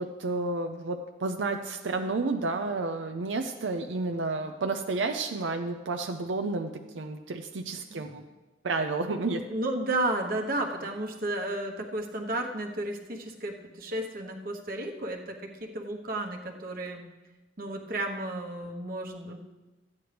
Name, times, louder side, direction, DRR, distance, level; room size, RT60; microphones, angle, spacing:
voice 1, 0.0-8.2 8.6-9.4, right 3 dB, 85° right, 5 dB, 0.6 m, -31 dB
voice 2, 9.2-17.0 17.6-19.4, right 1 dB, 50° right, 2 dB, 1.1 m, -33 dB
14.0 x 9.5 x 3.4 m, 1.1 s
head